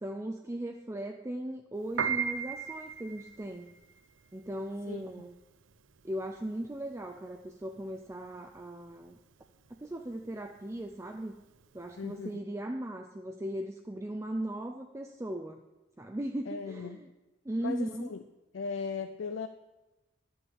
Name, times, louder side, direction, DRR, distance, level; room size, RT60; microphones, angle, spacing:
voice 1, 0.0-3.7 4.3-5.3 6.0-9.2 9.8-11.3 11.7-15.6 16.0-17.1 17.4-18.1, right 1 dB, 15° right, 4 dB, 0.5 m, -38 dB
Piano, 1.8-12.2, right 7 dB, 90° right, 0.7 m, -38 dB
voice 2, 4.9-5.3 12.0-12.3 16.5-17.0 17.6-18.2 18.5-19.5, left 5 dB, 85° left, 9 dB, 0.5 m, -38 dB
11.5 x 6.9 x 7.1 m, 1.1 s
head